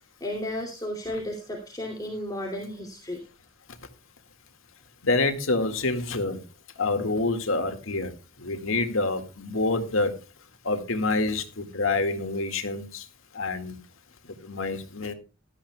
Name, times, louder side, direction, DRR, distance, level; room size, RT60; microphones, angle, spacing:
voice 1, 0.2-3.2, left 1 dB, 20° left, 2.7 m, -33 dB
voice 2, 5.0-6.4 6.8-8.1 8.4-10.2 10.6-13.0 13.4-13.8 14.4-15.1, left 3 dB, 80° left, 2.1 m, -27 dB
17.0 x 13.0 x 2.3 m
head